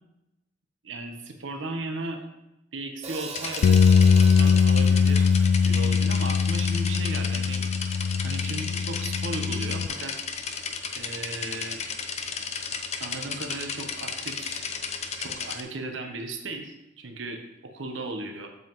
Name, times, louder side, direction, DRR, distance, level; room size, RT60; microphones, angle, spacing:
voice 1, 0.8-2.2 2.7-3.8 4.1-10.2 10.9-11.8 13.0-14.7 15.2-18.5, right 2 dB, 80° right, 4 dB, 1.0 m, -36 dB
Hi-hat, 3.0-7.3, right 3 dB, 35° right, 0.9 m, -42 dB
sound 1, 3.3-15.6, left 5 dB, 35° left, 0.6 m, -34 dB
sound 2, 3.6-9.9, left 6 dB, 80° left, 0.3 m, -21 dB
8.1 x 7.3 x 3.0 m, 0.91 s
head